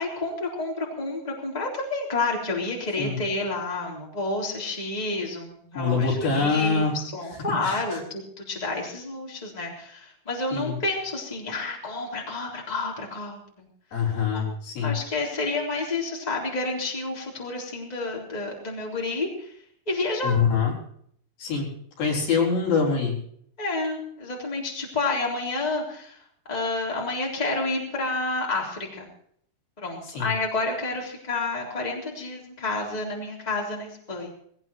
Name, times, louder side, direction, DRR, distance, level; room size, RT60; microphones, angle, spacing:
voice 1, 0.0-13.7 14.3-14.4 14.8-19.5 19.9-20.4 23.6-26.2 26.5-29.1 29.8-34.3, left 3 dB, 10° left, -2 dB, 3.2 m, -30 dB
voice 2, 5.7-7.0 7.6-8.0 10.5-10.8 13.9-15.0 20.2-20.7 21.4-21.7 22.0-23.2 30.1-30.3, left 5 dB, 70° left, -2 dB, 5.9 m, -24 dB
20.5 x 17.0 x 3.1 m, 0.64 s
omnidirectional pair, 4.2 m